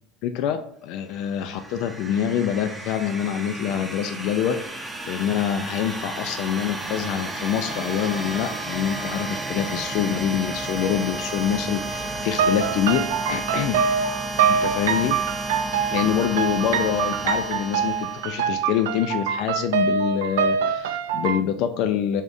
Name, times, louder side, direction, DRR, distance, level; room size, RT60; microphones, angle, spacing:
voice 1, 0.2-14.1 14.5-15.2 15.9-22.2, left 9 dB, 60° left, 8 dB, 0.3 m, -26 dB
sound 1, 1.2-18.8, right 2 dB, 10° right, 0.6 m, -32 dB
sound 2, 12.3-21.4, right 7 dB, 90° right, 0.3 m, -24 dB
3.5 x 2.5 x 3.9 m, 0.63 s
supercardioid pair, 110°, 0 cm